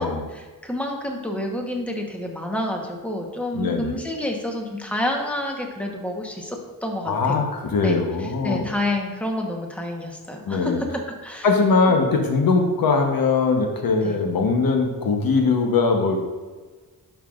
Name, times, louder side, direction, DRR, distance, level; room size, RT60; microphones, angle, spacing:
voice 1, 0.0-7.4 7.8-11.5 14.0-14.2, left 1 dB, 5° left, 1 dB, 1.1 m, -29 dB
voice 2, 3.5-4.0 7.1-8.7 10.5-10.8 11.4-16.2, left 4 dB, 85° left, 3 dB, 1.1 m, -21 dB
11.5 x 5.6 x 2.5 m, 1.4 s
wide cardioid pair, 110°, 34 cm